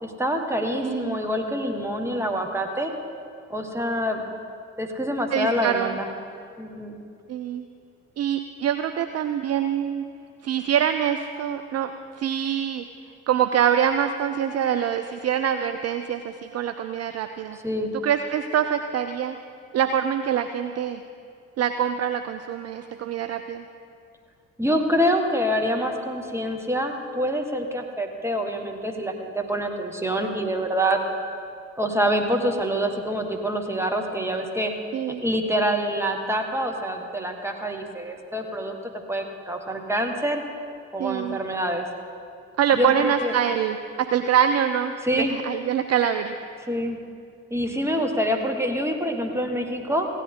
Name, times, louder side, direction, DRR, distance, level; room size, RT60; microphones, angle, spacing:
voice 1, 0.0-2.9 3.5-4.2 4.8-6.1 6.6-7.0 17.6-17.9 24.6-31.0 31.8-34.7 35.2-38.8 39.1-40.4 40.9-41.9 42.7-43.3 45.0-45.3 46.7-47.0 47.5-50.1, equal, 5° right, 3 dB, 1.6 m, -26 dB
voice 2, 0.8-1.2 5.3-6.0 7.3-7.7 8.2-10.0 10.4-12.8 13.3-17.6 17.9-19.4 19.7-21.0 21.6-23.6 34.9-35.2 41.0-41.4 42.6-46.4, right 9 dB, 40° right, 8 dB, 0.5 m, -25 dB
16.0 x 10.5 x 3.8 m, 2.4 s
figure-of-eight pair, 40°, 40 cm